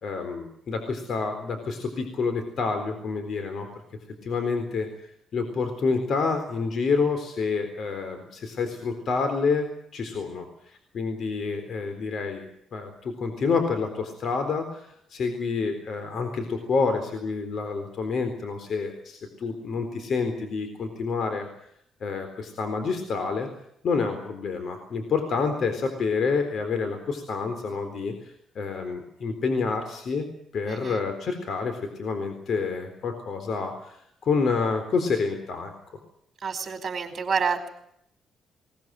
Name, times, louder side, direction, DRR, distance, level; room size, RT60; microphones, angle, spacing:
voice 1, 0.0-3.7 4.2-4.9 5.3-21.5 22.0-23.5 23.8-30.3 30.5-35.7, left 4 dB, 60° left, 7 dB, 4.0 m, -28 dB
voice 2, 30.7-31.0 36.4-37.7, right 6 dB, 40° right, 7 dB, 4.8 m, -28 dB
20.5 x 19.5 x 9.1 m, 0.72 s
cardioid pair, 90°, 0 cm